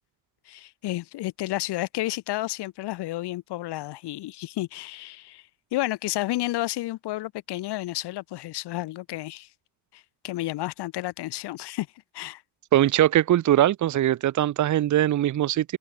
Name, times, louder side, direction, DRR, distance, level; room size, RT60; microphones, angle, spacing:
voice 1, 0.5-5.4 5.7-9.5 9.9-11.9 12.1-12.4, left 16 dB, 75° left, 7.5 m, -31 dB
voice 2, 12.7-15.8, right 12 dB, 45° right, 1.4 m, -21 dB
cardioid pair, 155°, 40 cm